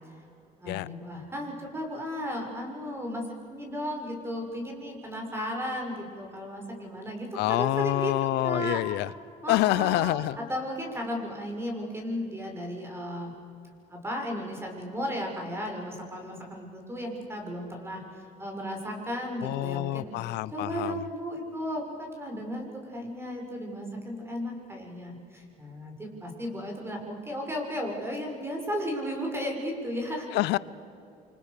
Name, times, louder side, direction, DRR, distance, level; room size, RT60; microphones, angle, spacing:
voice 1, 0.6-3.2 3.5-8.1 8.4-8.8 9.4-13.3 13.9-20.1 20.5-30.3, equal, 15° right, 1 dB, 6.5 m, -35 dB
voice 2, 7.3-9.1 9.5-10.4 19.4-21.0 30.3-30.6, left 17 dB, 85° left, 19 dB, 0.7 m, -27 dB
29.5 x 25.5 x 6.9 m, 2.7 s
cardioid pair, 110°, 17 cm